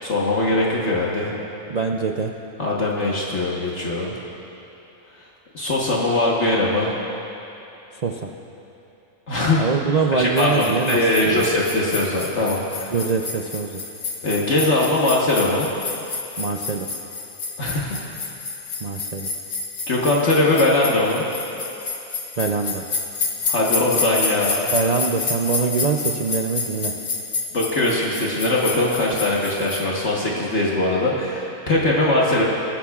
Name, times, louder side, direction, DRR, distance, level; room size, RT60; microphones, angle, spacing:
voice 1, 0.0-1.3 2.6-4.1 5.5-6.9 9.3-9.6 10.1-12.9 14.2-15.7 17.6-18.0 19.9-21.2 23.4-24.7 27.5-32.4, left 2 dB, 55° left, -4 dB, 1.5 m, -21 dB
voice 2, 1.7-2.3 8.0-8.3 9.6-11.5 12.9-13.8 16.4-16.9 18.8-19.3 22.4-22.8 24.7-26.9, right 5 dB, 70° right, 2 dB, 0.3 m, -24 dB
sound 1, 10.4-29.9, left 4 dB, 75° left, 1.6 m, -29 dB
22.0 x 14.5 x 2.4 m, 2.9 s
omnidirectional pair, 1.5 m